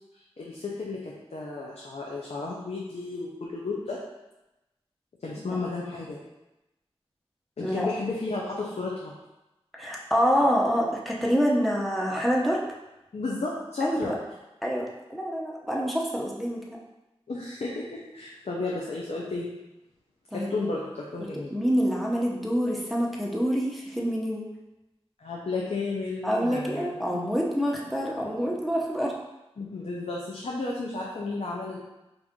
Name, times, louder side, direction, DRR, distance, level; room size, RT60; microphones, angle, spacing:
voice 1, 0.4-4.0 5.2-6.2 7.6-9.1 13.1-14.2 17.3-19.5 20.3-21.5 25.2-27.2 27.7-27.8 29.6-31.8, left 3 dB, 85° left, -4 dB, 0.6 m, -33 dB
voice 2, 9.7-12.6 13.8-14.1 14.6-16.6 20.3-20.7 21.2-24.5 26.2-29.1, equal, ahead, -3 dB, 0.8 m, -26 dB
4.7 x 2.6 x 3.6 m, 0.98 s
wide cardioid pair, 50°, 11 cm